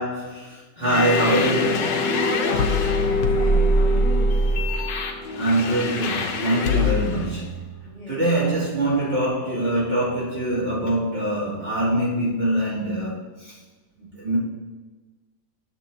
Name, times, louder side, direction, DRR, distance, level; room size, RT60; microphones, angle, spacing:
voice 1, 0.0-2.1 5.3-7.7 8.1-13.5 14.2-14.4, right 1 dB, 30° right, -10 dB, 3.2 m, -24 dB
sound 1, 0.8-7.3, left 1 dB, 80° left, 1.6 m, -22 dB
voice 2, 2.1-4.5 7.8-8.6, left 2 dB, 40° left, -7 dB, 2.6 m, -35 dB
12.5 x 7.0 x 2.8 m, 1.3 s
omnidirectional pair, 1.9 m